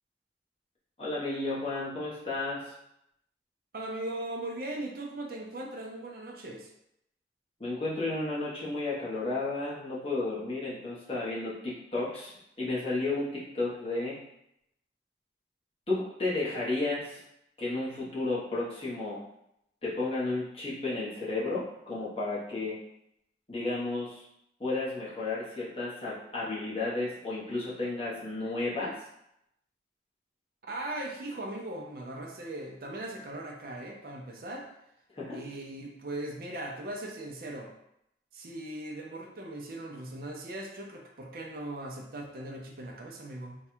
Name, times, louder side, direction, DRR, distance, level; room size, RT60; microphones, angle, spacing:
voice 1, 1.0-2.7 7.6-12.3 12.6-14.2 15.9-17.2 17.6-19.2 19.8-22.8 23.5-24.2 24.6-29.0 35.1-35.4, left 2 dB, 35° left, -7 dB, 1.1 m, -32 dB
voice 2, 3.7-6.7 30.7-34.7 35.3-37.7 38.3-43.6, right 1 dB, 55° right, 1 dB, 0.6 m, -39 dB
3.3 x 2.3 x 4.3 m, 0.79 s
head